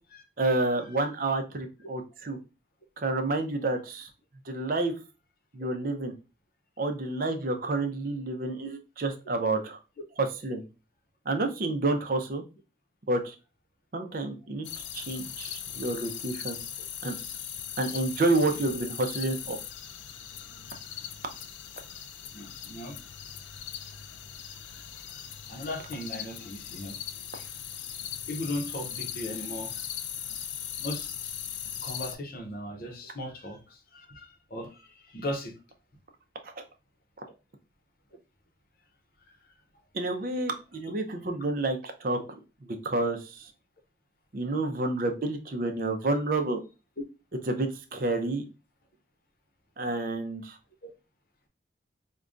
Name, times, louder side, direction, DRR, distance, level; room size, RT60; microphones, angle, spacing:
voice 1, 0.4-2.4 3.0-4.1 4.4-4.9 5.5-6.1 6.8-9.8 10.2-10.6 11.3-12.4 13.1-13.4 13.9-14.7 14.9-16.6 17.0-17.1 17.8-19.6 36.4-36.5 39.9-43.5 44.3-46.6 47.5-48.4 49.8-50.6, right 2 dB, 50° right, 0.5 m, -29 dB
sound 1, 14.6-32.2, left 9 dB, 90° left, 0.4 m, -39 dB
voice 2, 22.3-23.0 24.7-27.0 27.3-27.5 28.3-29.7 30.8-31.3 31.8-35.5 50.8-50.9, left 1 dB, 55° left, 0.7 m, -38 dB
4.8 x 2.2 x 2.5 m
head